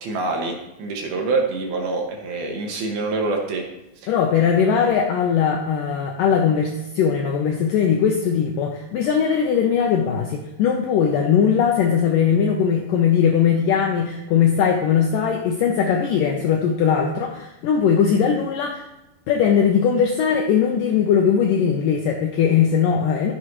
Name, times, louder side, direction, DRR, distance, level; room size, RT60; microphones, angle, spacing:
voice 1, 0.0-3.6 4.0-4.1, right 3 dB, 75° right, 1 dB, 3.0 m, -25 dB
voice 2, 4.1-18.8 19.3-23.3, left 7 dB, 80° left, 2 dB, 2.1 m, -19 dB
14.5 x 7.0 x 3.0 m, 0.92 s
omnidirectional pair, 4.6 m